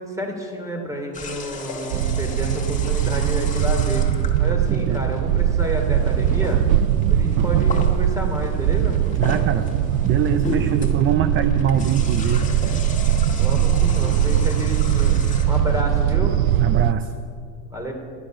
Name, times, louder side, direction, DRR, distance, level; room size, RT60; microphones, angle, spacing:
voice 1, 0.0-6.6 7.1-9.0 13.4-15.2 15.5-16.4 17.7-17.9, equal, 10° right, 2 dB, 3.0 m, -30 dB
sound 1, 1.1-15.8, left 3 dB, 20° left, 2.1 m, -35 dB
sound 2, 1.9-16.9, right 10 dB, 85° right, 0.5 m, -20 dB
voice 2, 4.5-5.0 9.2-9.7 10.0-12.5 16.6-17.1, right 8 dB, 30° right, 11 dB, 0.6 m, -23 dB
13.0 x 10.5 x 6.3 m, 2.1 s
supercardioid pair, 105°, 40 cm